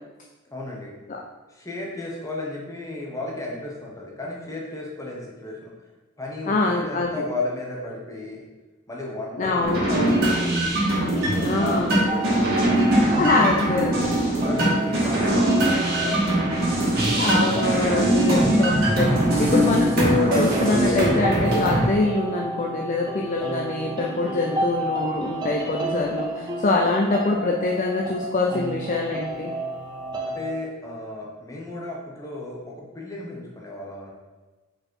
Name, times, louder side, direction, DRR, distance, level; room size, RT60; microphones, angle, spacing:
voice 1, 0.5-1.0 1.5-5.7 6.2-8.4 8.9-10.7 11.1-13.6 14.4-16.7 30.2-34.1, left 2 dB, 15° left, -2 dB, 1.1 m, -34 dB
voice 2, 6.5-7.3 9.4-10.2 11.4-12.1 13.2-14.8 17.1-29.5, left 3 dB, 40° left, 0 dB, 0.5 m, -24 dB
sound 1, 9.6-21.8, right 1 dB, 50° right, 2.0 m, -21 dB
sound 2, 12.1-30.5, right 1 dB, 20° right, 0.7 m, -32 dB
5.1 x 4.2 x 4.6 m, 1.2 s
head